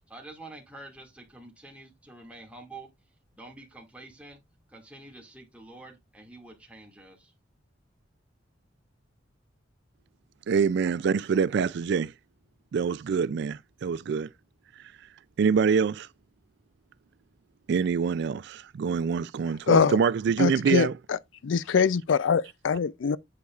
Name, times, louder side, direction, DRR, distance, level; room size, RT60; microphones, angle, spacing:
voice 1, 0.1-2.9 3.3-4.4 4.7-7.3, right 2 dB, 5° right, 2.1 m, -47 dB
voice 2, 10.5-12.1 12.7-14.3 15.4-16.1 17.7-20.9, right 6 dB, 60° right, 0.3 m, -25 dB
voice 3, 19.7-20.0 20.4-21.2 21.4-23.2, left 6 dB, 75° left, 0.4 m, -23 dB
8.4 x 7.8 x 2.4 m
head